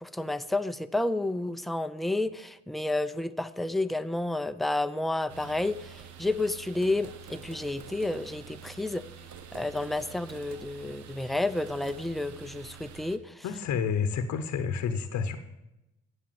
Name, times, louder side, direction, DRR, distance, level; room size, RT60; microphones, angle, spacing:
voice 1, 0.0-9.0 9.5-13.4, left 2 dB, ahead, 11 dB, 0.4 m, -30 dB
sound 1, 5.3-13.2, right 8 dB, 70° right, 0.9 m, -47 dB
voice 2, 13.4-15.4, left 6 dB, 70° left, 8 dB, 0.8 m, -29 dB
8.3 x 7.6 x 7.4 m, 0.95 s
cardioid pair, 90°, 30 cm